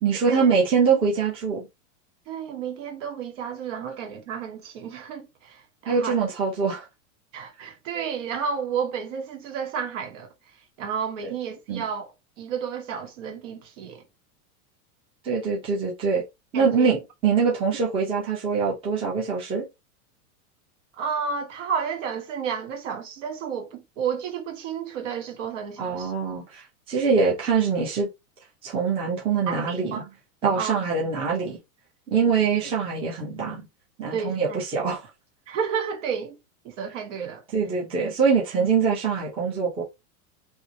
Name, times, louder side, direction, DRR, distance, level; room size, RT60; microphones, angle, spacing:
voice 1, 0.0-1.7 5.9-6.9 7.6-7.7 11.2-11.3 11.7-11.8 15.2-16.2 16.5-19.7 25.8-28.1 28.6-30.0 30.4-31.6 32.1-33.7 34.0-35.0 37.5-39.8, right 5 dB, 10° right, 0.8 m, -24 dB
voice 2, 2.3-5.6 5.9-6.2 7.3-10.3 10.8-12.1 12.4-14.0 16.5-16.9 20.9-26.1 29.5-30.0 30.5-30.8 34.1-34.6 34.9-35.0 35.5-36.4 36.6-37.4, right 7 dB, 55° right, 1.7 m, -31 dB
3.5 x 3.0 x 4.1 m
supercardioid pair, 175°, 43 cm